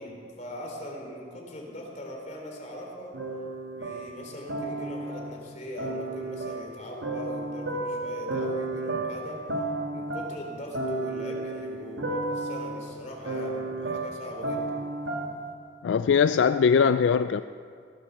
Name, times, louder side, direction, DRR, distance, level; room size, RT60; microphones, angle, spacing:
voice 1, 0.0-3.2 3.7-9.4 9.9-14.8, left 1 dB, 40° left, 0 dB, 3.3 m, -40 dB
sound 1, 3.1-5.4 5.8-15.5, right 2 dB, 85° right, 1.8 m, -33 dB
voice 2, 15.8-17.4, left 6 dB, 70° left, 12 dB, 0.3 m, -21 dB
17.5 x 10.5 x 7.2 m, 2.4 s
head